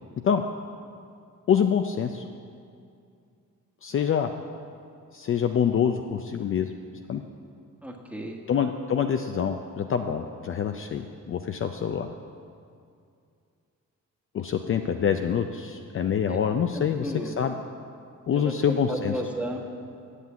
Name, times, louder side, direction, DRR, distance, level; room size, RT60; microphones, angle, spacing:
voice 1, 1.5-2.3 3.8-4.3 5.1-6.7 7.1-7.2 8.5-12.1 14.3-17.5 18.3-19.1, left 8 dB, 45° left, 6 dB, 0.5 m, -26 dB
voice 2, 7.8-8.4 16.3-16.4 16.7-17.3 18.3-19.6, equal, 5° right, 0 dB, 1.3 m, -34 dB
8.3 x 7.4 x 8.4 m, 2.4 s
cardioid pair, 120°, 31 cm